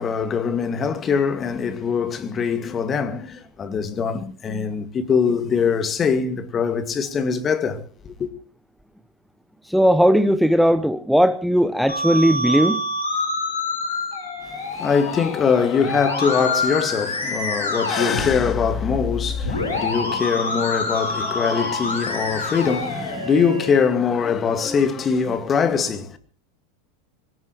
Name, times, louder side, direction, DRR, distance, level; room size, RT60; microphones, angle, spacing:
voice 1, 0.0-8.3 14.5-26.2, left 6 dB, 30° left, 2.2 m, -22 dB
voice 2, 9.6-12.8, equal, ahead, 0.8 m, -17 dB
Musical instrument, 11.9-23.8, left 2 dB, 85° left, 7.7 m, -26 dB
22.0 x 19.0 x 3.3 m
figure-of-eight pair, 85°, 0 cm